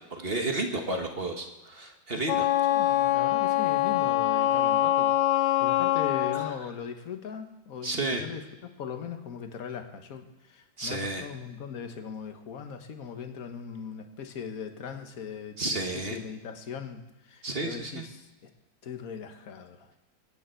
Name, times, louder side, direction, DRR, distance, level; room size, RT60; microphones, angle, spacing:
voice 1, 0.1-2.5 7.8-8.2 10.8-11.2 15.6-16.2 17.4-18.0, right 2 dB, 35° right, 3 dB, 1.4 m, -31 dB
Wind instrument woodwind instrument, 2.2-6.6, left 14 dB, 70° left, 1.2 m, -24 dB
voice 2, 2.7-5.1 5.6-18.3 18.8-19.9, left 7 dB, 50° left, 6 dB, 1.6 m, -39 dB
23.5 x 9.4 x 4.5 m, 1.0 s
omnidirectional pair, 2.1 m